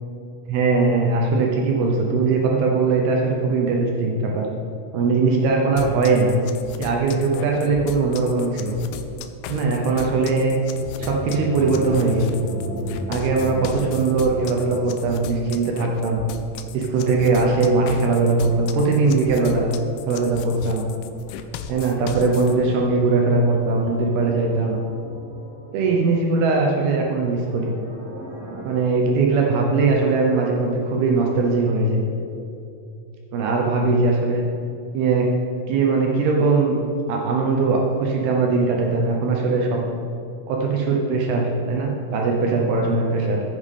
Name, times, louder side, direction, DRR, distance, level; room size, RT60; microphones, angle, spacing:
voice 1, 0.5-4.5 4.9-6.3 6.8-8.8 9.5-10.5 11.0-12.4 13.1-16.2 16.7-19.7 20.1-20.9 21.7-24.8 25.7-27.7 28.6-32.0 33.3-34.4 34.9-35.3 35.7-36.7 37.1-39.8 40.5-43.4, right 3 dB, 80° right, 0 dB, 2.3 m, -20 dB
sound 1, 5.8-22.5, left 8 dB, 85° left, 3.0 m, -36 dB
sound 2, 10.1-20.8 22.0-28.8, right 1 dB, 55° right, 2.6 m, -37 dB
12.5 x 8.2 x 3.7 m, 2.6 s
omnidirectional pair, 5.5 m